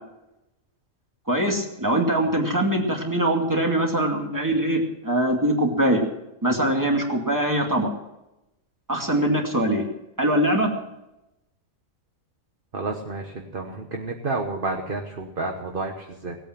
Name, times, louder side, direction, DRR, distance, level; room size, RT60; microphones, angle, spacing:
voice 1, 1.3-6.0 6.4-7.9 8.9-9.8 10.2-10.7, right 1 dB, 15° right, 1 dB, 2.4 m, -22 dB
voice 2, 12.7-16.4, right 3 dB, 45° right, 3 dB, 1.3 m, -30 dB
18.0 x 8.7 x 7.5 m, 0.92 s
omnidirectional pair, 1.4 m